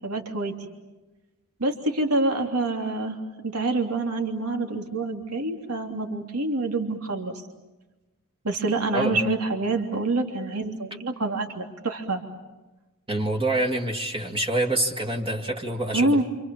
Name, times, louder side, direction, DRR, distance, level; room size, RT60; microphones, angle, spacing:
voice 1, 0.0-0.5 1.6-3.2 3.4-7.3 8.4-12.2 15.9-16.2, right 2 dB, 85° right, 3 dB, 3.2 m, -26 dB
voice 2, 8.9-9.3 13.1-16.2, right 1 dB, 25° right, 0 dB, 2.1 m, -26 dB
29.5 x 27.0 x 7.2 m, 1.1 s
head